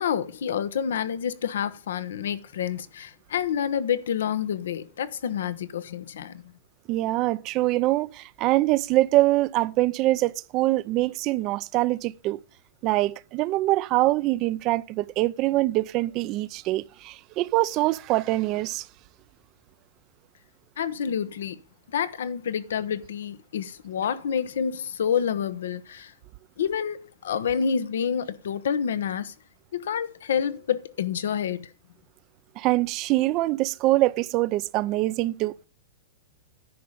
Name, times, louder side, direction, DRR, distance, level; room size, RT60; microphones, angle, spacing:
voice 1, 0.0-6.4 20.8-21.6 21.9-26.1 26.6-29.3 29.7-31.7, left 8 dB, 85° left, 0.9 m, -28 dB
voice 2, 6.9-12.4 12.8-18.9 32.6-35.7, right 17 dB, 40° right, 0.5 m, -24 dB
10.5 x 5.2 x 7.3 m
hypercardioid pair, 130°, 0 cm